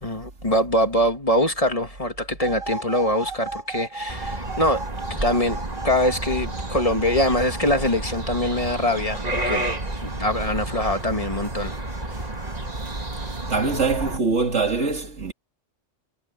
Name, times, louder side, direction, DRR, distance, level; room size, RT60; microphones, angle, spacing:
voice 1, 0.0-5.6 5.8-9.7 10.0-11.8 12.1-12.3, left 1 dB, 30° left, 2.3 m, -23 dB
sound 1, 2.4-13.6, right 3 dB, 55° right, 5.1 m, -38 dB
sound 2, 4.1-14.2, right 2 dB, 35° right, 2.3 m, -31 dB
voice 2, 13.5-15.3, right 4 dB, 85° right, 2.9 m, -23 dB
omnidirectional pair, 1.2 m